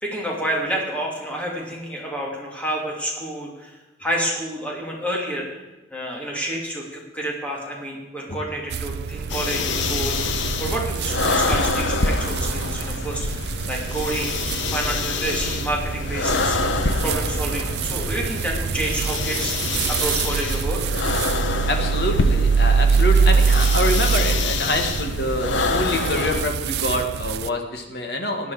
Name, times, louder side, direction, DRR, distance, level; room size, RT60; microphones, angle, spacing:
voice 1, 0.0-5.6 5.9-10.3 10.6-13.3 13.7-14.3 14.6-16.6 17.0-20.8, right 1 dB, 5° left, -2 dB, 2.9 m, -29 dB
sound 1, 8.7-27.5, right 5 dB, 60° right, 0.4 m, -24 dB
sound 2, 9.3-26.4, left 3 dB, 85° left, 1.1 m, -26 dB
voice 2, 21.7-28.5, left 1 dB, 60° left, 4 dB, 1.9 m, -26 dB
17.0 x 11.0 x 5.0 m, 1.1 s
head